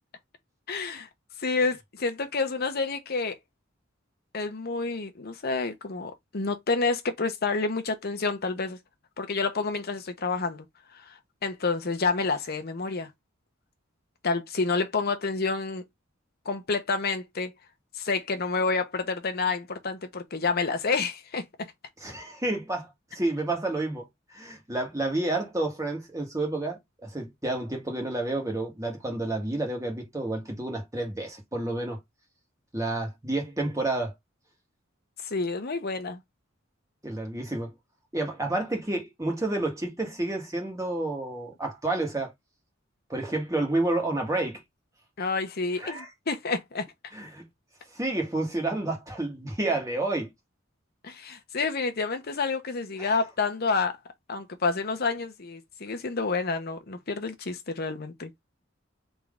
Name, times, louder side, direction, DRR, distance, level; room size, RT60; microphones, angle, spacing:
voice 1, 0.7-1.1 1.4-3.3 4.3-8.8 9.2-10.7 10.9-13.1 14.2-15.8 16.4-17.5 17.9-21.4 35.2-36.2 45.2-46.8 51.0-54.0 54.3-58.3, left 4 dB, 50° left, 0.9 m, -29 dB
voice 2, 22.0-24.1 24.3-32.0 32.7-34.1 37.0-37.7 38.1-42.3 43.1-44.6 45.8-46.1 47.1-47.4 47.9-50.3 53.0-53.1, right 2 dB, 15° right, 1.6 m, -30 dB
3.7 x 3.2 x 3.5 m
head